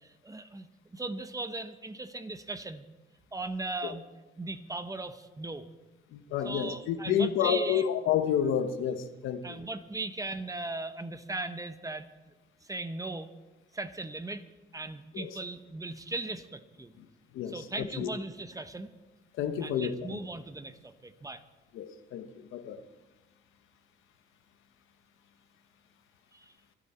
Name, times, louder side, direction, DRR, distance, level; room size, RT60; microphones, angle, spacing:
voice 1, 0.2-0.7 0.9-2.9 3.3-4.0 4.4-5.6 6.4-7.8 9.4-12.1 12.7-13.3 13.7-14.4 14.7-16.9 17.5-18.9 19.6-21.4 26.3-26.4, right 2 dB, 15° right, 10 dB, 1.1 m, -38 dB
voice 2, 6.1-9.6 15.1-15.4 17.3-18.1 19.4-20.2 21.7-22.8, left 8 dB, 90° left, 9 dB, 1.2 m, -30 dB
24.0 x 11.0 x 4.4 m, 1.1 s
cardioid pair, 90°, 20 cm